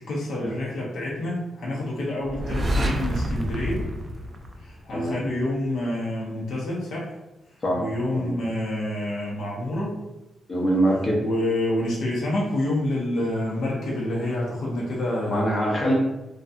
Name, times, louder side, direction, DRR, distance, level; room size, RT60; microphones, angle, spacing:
voice 1, 0.0-3.9 4.6-7.1 7.8-10.0 11.2-15.5, left 1 dB, 80° left, -4 dB, 0.8 m, -28 dB
sound 1, 2.2-5.1, equal, 35° right, 0.4 m, -28 dB
voice 2, 7.6-8.3 10.5-11.2 15.3-15.9, right 1 dB, 40° left, -2 dB, 0.7 m, -24 dB
2.7 x 2.3 x 2.4 m, 0.98 s
cardioid pair, 85°, 0 cm